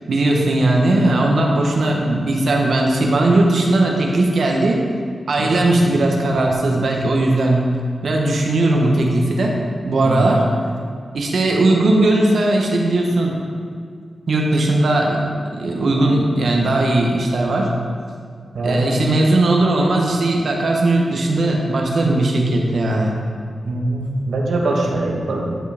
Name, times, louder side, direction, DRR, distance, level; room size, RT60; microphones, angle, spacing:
voice 1, 0.1-4.8 5.3-7.7 8.0-9.6 9.8-10.4 11.1-13.3 14.3-15.2 15.6-17.7 18.6-23.2, right 2 dB, 65° right, 0 dB, 0.9 m, -18 dB
voice 2, 18.5-19.1 23.6-25.6, right 2 dB, 85° right, 0 dB, 1.0 m, -22 dB
10.0 x 4.7 x 3.4 m, 2.2 s
wide cardioid pair, 145°, 0 cm